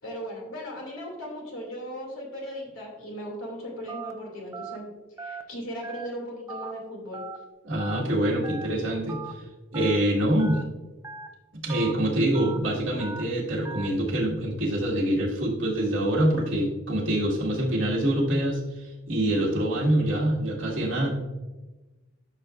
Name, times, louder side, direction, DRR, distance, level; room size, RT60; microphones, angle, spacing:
voice 1, 0.0-4.8 5.2-7.2, equal, 85° left, -1 dB, 2.5 m, -37 dB
Telephone, 3.9-4.1 4.5-4.8 5.2-5.4 5.8-6.1 6.5-6.7 7.1-7.4 7.8-8.0 8.4-8.7 9.1-9.3 9.7-10.0 10.4-10.6 11.0-11.3 11.7-11.9 12.3-12.6 13.0-13.2 13.6-13.9, right 4 dB, 15° right, 0.5 m, -38 dB
voice 2, 7.6-9.2 9.7-10.6 11.6-21.1, right 1 dB, 65° right, -5 dB, 1.8 m, -25 dB
12.5 x 6.1 x 2.5 m, 1.1 s
head